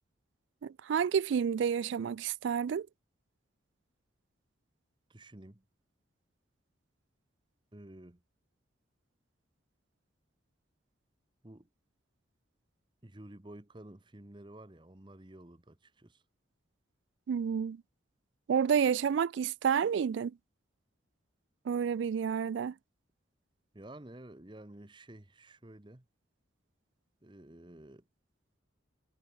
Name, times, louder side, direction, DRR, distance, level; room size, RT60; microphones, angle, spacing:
voice 1, 0.6-2.9 17.3-17.8 18.5-20.3 21.7-22.7, right 7 dB, 65° right, 0.3 m, -30 dB
voice 2, 5.1-5.6 7.7-8.2 11.4-11.7 13.0-16.2 23.7-26.0 27.2-28.1, right 1 dB, 25° right, 1.0 m, -51 dB
head